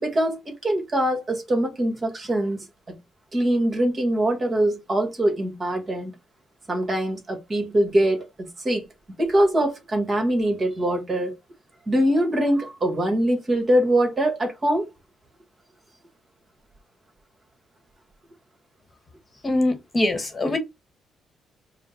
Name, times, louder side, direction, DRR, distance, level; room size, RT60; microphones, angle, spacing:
voice 1, 0.0-2.9 3.3-6.1 6.7-8.9 9.2-11.3 11.9-14.9, right 1 dB, 35° right, 1.5 m, -23 dB
voice 2, 19.4-20.6, left 1 dB, 30° left, 1.2 m, -23 dB
4.9 x 2.1 x 4.3 m
cardioid pair, 90°, 0 cm